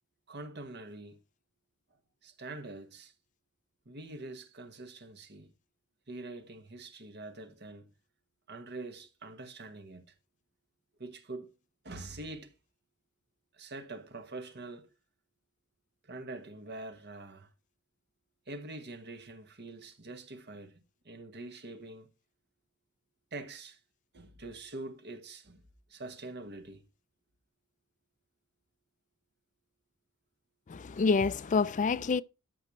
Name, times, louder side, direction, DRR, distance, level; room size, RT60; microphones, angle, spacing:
voice 1, 0.3-1.2 2.2-3.1 3.8-5.5 6.1-7.9 8.5-10.1 11.0-11.5 11.8-12.5 13.5-14.9 16.1-17.5 18.5-20.8 21.0-22.1 23.3-23.8 24.1-25.6 25.9-26.9, right 2 dB, 50° right, 1.5 m, -44 dB
voice 2, 30.7-32.2, left 4 dB, 35° left, 0.4 m, -27 dB
14.0 x 5.5 x 3.2 m
head